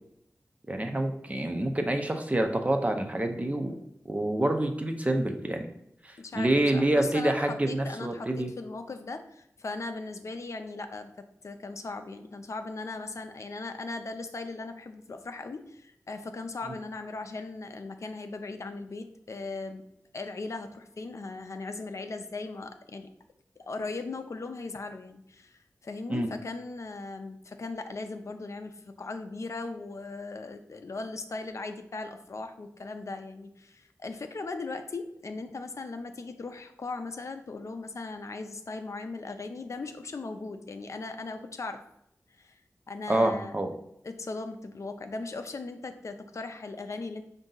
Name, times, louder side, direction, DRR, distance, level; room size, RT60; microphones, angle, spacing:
voice 1, 0.7-3.7 4.1-5.7 6.0-8.5 16.7-16.8 26.1-26.3 43.1-43.7, right 1 dB, 25° right, 5 dB, 0.6 m, -27 dB
voice 2, 6.2-19.8 20.1-23.1 23.6-41.8 42.3-42.6 42.9-43.6 44.0-47.2, left 3 dB, 60° left, 7 dB, 0.5 m, -38 dB
5.1 x 2.6 x 3.8 m, 0.77 s
wide cardioid pair, 90°, 6 cm